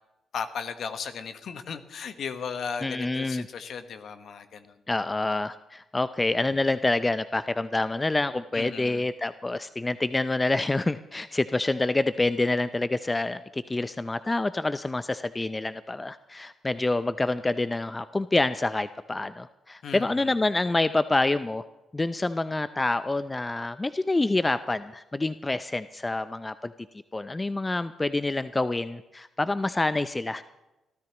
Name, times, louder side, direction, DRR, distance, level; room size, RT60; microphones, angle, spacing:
voice 1, 0.3-4.8 8.5-9.1 19.8-20.3, left 6 dB, 60° left, 9 dB, 1.3 m, -36 dB
voice 2, 2.8-3.4 4.9-21.6 21.9-26.7 27.1-30.4, left 2 dB, 25° left, 13 dB, 0.6 m, -27 dB
29.0 x 13.5 x 3.0 m, 0.97 s
hypercardioid pair, 40°, 0 cm